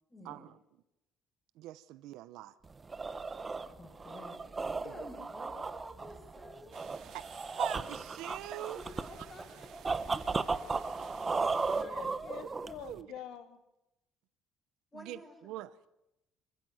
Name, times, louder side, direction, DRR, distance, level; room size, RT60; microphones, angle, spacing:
voice 1, 0.1-0.5 3.7-6.9 8.7-12.1 14.9-15.4, left 1 dB, 15° left, 5.4 m, -52 dB
voice 2, 1.5-2.6 7.1-8.8 11.3-11.6 12.4-12.5 12.8-13.1 14.9-15.9, right 15 dB, 80° right, 0.8 m, -43 dB
sound 1, 2.7-13.0, right 4 dB, 20° right, 0.9 m, -36 dB
sound 2, 6.7-11.8, right 9 dB, 55° right, 2.3 m, -55 dB
voice 3, 11.7-13.6, left 9 dB, 60° left, 3.0 m, -46 dB
26.0 x 15.0 x 9.3 m
cardioid pair, 165°, 0 cm